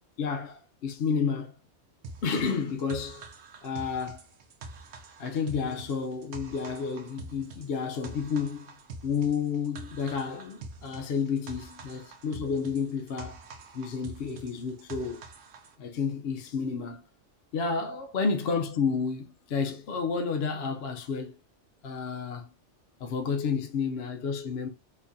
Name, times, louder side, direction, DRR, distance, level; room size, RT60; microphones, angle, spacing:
voice 1, 0.2-1.5 2.2-3.3 3.6-4.2 5.2-8.7 9.0-13.4 13.7-15.2 15.8-17.0 17.5-21.4 21.8-22.5 23.0-24.7, left 5 dB, 65° left, 0.8 m, -31 dB
sound 1, 2.0-15.7, right 3 dB, 90° right, 1.0 m, -45 dB
3.5 x 3.1 x 2.6 m
omnidirectional pair, 1.2 m